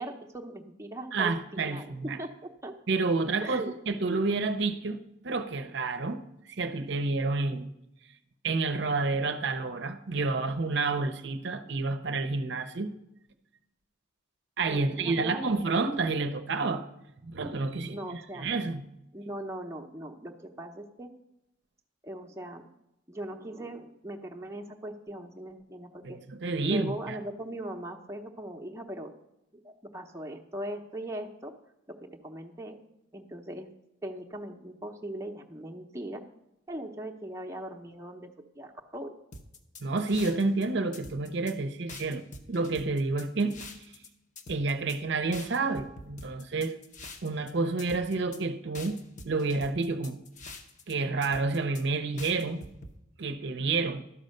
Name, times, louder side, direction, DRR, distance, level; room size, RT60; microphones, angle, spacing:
voice 1, 0.0-2.7 3.4-3.7 14.7-15.6 17.9-18.5 19.1-21.1 22.0-22.7 23.1-26.2 26.7-29.1 29.5-31.6 31.9-32.8 33.1-33.7 34.0-36.2 36.7-39.2, right 1 dB, 15° right, 2 dB, 0.7 m, -40 dB
voice 2, 1.1-2.2 2.9-7.7 8.4-12.9 14.6-16.8 17.2-18.0 18.4-18.8 26.0-27.2 39.8-42.2 42.5-43.6 44.5-46.8 47.2-49.0 49.2-50.2 50.9-52.6 53.2-54.0, right 3 dB, 60° right, 8 dB, 0.6 m, -29 dB
sound 1, 39.3-40.6 40.9-41.5 41.9-44.1 44.4-45.0 45.3-47.5 47.8-48.4 48.7-50.9 51.2-51.8 52.2-52.9, left 2 dB, 40° left, 0.8 m, -45 dB
12.0 x 5.4 x 6.5 m, 0.87 s
head